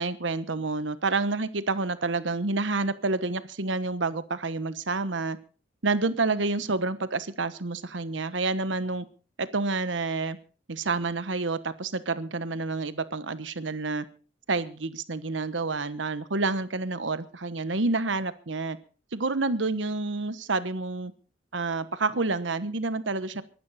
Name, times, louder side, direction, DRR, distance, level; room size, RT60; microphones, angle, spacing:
voice 1, 0.0-5.4 5.8-9.1 9.4-10.4 10.7-14.0 14.5-18.8 19.1-21.1 21.5-23.4, right 3 dB, 90° right, 1.1 m, -28 dB
22.5 x 12.0 x 4.2 m
head